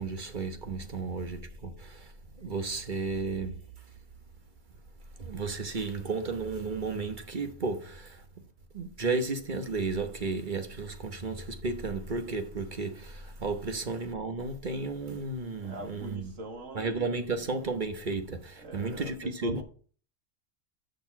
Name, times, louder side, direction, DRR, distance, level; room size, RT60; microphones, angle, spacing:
voice 1, 0.0-3.6 5.2-8.2 8.7-16.3 16.7-19.6, right 3 dB, 40° right, 1.1 m, -33 dB
voice 2, 15.6-17.5 18.6-19.6, right 2 dB, 75° right, 2.1 m, -43 dB
6.6 x 6.4 x 5.9 m
omnidirectional pair, 1.3 m